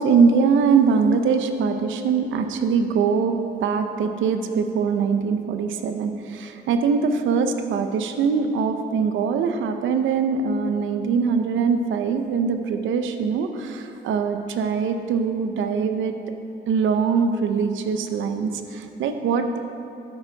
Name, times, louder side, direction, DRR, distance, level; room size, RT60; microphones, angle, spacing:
voice 1, 0.0-16.1 16.7-19.6, right 5 dB, 80° right, 7 dB, 0.7 m, -22 dB
9.3 x 9.1 x 4.0 m, 2.7 s
cardioid pair, 90°, 20 cm